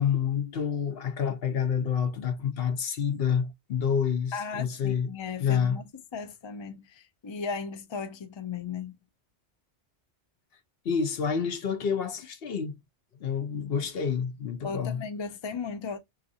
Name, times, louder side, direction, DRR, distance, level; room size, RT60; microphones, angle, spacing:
voice 1, 0.0-5.1 5.4-5.8 10.8-12.8 13.2-15.0, left 7 dB, 65° left, 0.9 m, -28 dB
voice 2, 4.3-5.8 6.1-9.0 14.6-16.0, left 5 dB, 40° left, 0.4 m, -36 dB
4.1 x 2.5 x 2.6 m
omnidirectional pair, 1.1 m